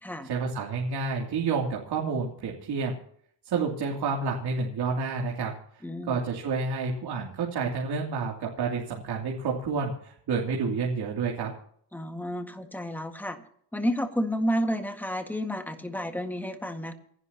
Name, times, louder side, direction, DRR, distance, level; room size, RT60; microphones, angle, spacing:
voice 1, 0.2-2.9 3.4-5.6 6.1-11.5, right 4 dB, 55° right, -1 dB, 3.0 m, -29 dB
voice 2, 5.8-6.2 11.9-13.4 13.7-16.9, equal, 5° left, 5 dB, 1.8 m, -31 dB
28.5 x 11.0 x 2.9 m, 0.62 s
cardioid pair, 155°, 46 cm